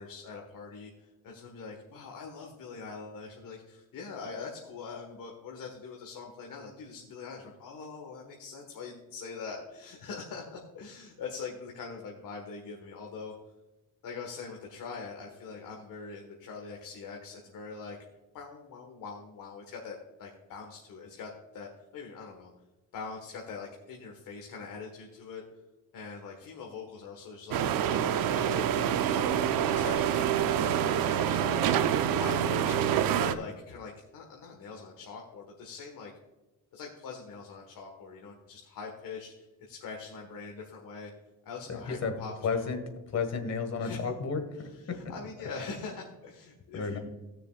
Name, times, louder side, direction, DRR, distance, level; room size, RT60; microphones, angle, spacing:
voice 1, 0.0-13.3 14.0-18.0 18.3-22.5 22.9-25.4 25.9-27.6 27.9-31.7 32.1-32.8 33.1-36.1 36.7-41.1 41.4-42.7 43.8-44.1 44.6-47.0, left 5 dB, 80° left, 0 dB, 1.7 m, -43 dB
sound 1, 27.5-33.3, right 9 dB, 85° right, 0.7 m, -26 dB
voice 2, 41.7-42.1 42.4-42.8 43.1-45.0 46.7-47.0, left 5 dB, 50° left, 6 dB, 1.8 m, -32 dB
18.0 x 6.7 x 2.5 m, 1.1 s
cardioid pair, 115°, 33 cm